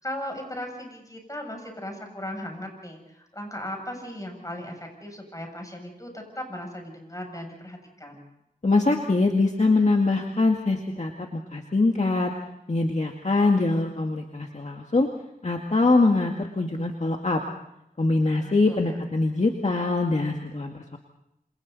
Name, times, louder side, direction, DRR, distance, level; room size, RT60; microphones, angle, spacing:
voice 1, 0.0-8.2 18.3-18.5 18.8-19.0, left 1 dB, 20° left, 3 dB, 7.8 m, -37 dB
voice 2, 8.6-12.3 12.7-15.1 15.4-17.4 18.0-21.0, left 3 dB, 50° left, 2 dB, 2.0 m, -23 dB
28.0 x 28.0 x 4.2 m, 0.79 s
wide cardioid pair, 60°, 15 cm